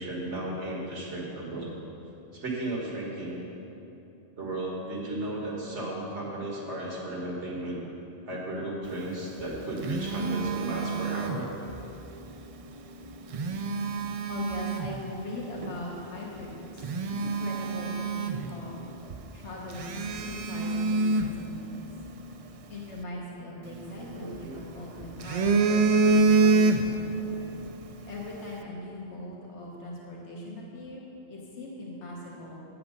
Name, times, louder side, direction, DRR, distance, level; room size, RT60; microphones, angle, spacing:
voice 1, 0.0-1.7 2.3-3.4 4.4-7.8 8.3-11.5 24.0-24.6 24.9-25.0, right 1 dB, 90° right, -3 dB, 2.0 m, -34 dB
Telephone, 9.3-11.9 13.1-15.0 15.6-15.8 16.3-16.4 16.8-18.8 19.1-19.2 19.7-22.1 23.7-24.6 25.0-27.2 27.5-27.7, right 3 dB, 70° right, 0.3 m, -26 dB
voice 2, 14.3-16.9 17.2-18.7 19.3-21.8 22.7-27.5 28.0-31.0 31.3-32.6, left 1 dB, 90° left, -3 dB, 1.5 m, -40 dB
9.2 x 7.8 x 5.2 m, 2.9 s
omnidirectional pair, 1.1 m